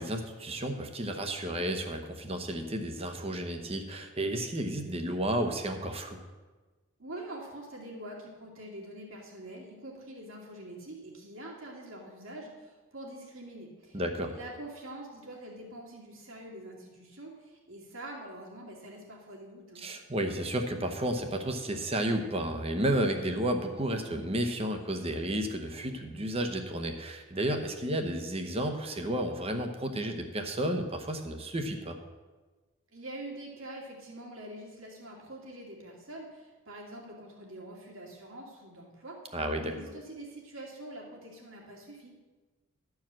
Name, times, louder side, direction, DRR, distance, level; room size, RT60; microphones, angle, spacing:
voice 1, 0.0-6.2 13.9-14.3 19.8-32.0 39.3-39.7, right 1 dB, 30° right, 5 dB, 0.9 m, -32 dB
voice 2, 7.0-19.8 32.9-42.1, right 1 dB, 75° right, -2 dB, 2.5 m, -45 dB
12.0 x 4.8 x 7.4 m, 1.3 s
head